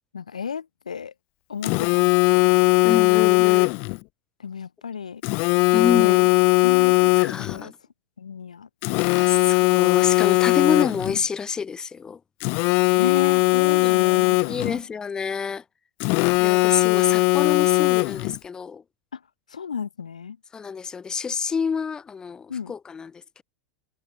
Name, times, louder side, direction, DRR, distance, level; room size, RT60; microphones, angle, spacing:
voice 1, 0.1-1.1 1.5-2.7 4.4-5.2 5.9-6.2 6.6-7.1 7.5-7.7 8.2-9.1 13.0-14.8 19.1-19.2 19.5-20.4 22.5-22.7, left 7 dB, 75° left, 5.0 m, -33 dB
Telephone, 1.6-4.0 5.2-7.6 8.8-11.2 12.4-14.8 16.0-18.4, left 31 dB, 45° left, 0.4 m, -19 dB
voice 2, 2.8-3.7 5.7-6.3 7.2-7.7 9.3-12.2 14.4-15.6 16.4-18.8 20.5-23.2, left 6 dB, 20° left, 7.2 m, -28 dB
figure-of-eight pair, 90°, 4 cm